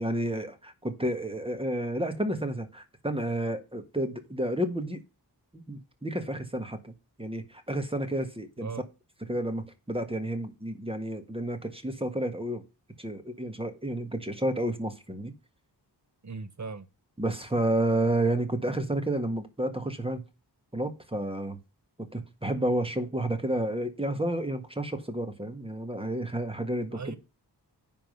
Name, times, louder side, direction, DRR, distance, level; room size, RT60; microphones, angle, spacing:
voice 1, 0.0-5.0 5.5-6.9 7.2-8.7 9.3-12.6 13.0-15.3 17.2-20.2 20.7-21.6 22.0-27.2, right 1 dB, 15° right, 1.5 m, -30 dB
voice 2, 16.2-16.9 26.9-27.2, right 4 dB, 40° right, 1.1 m, -38 dB
10.0 x 3.8 x 6.5 m
wide cardioid pair, 100°, 42 cm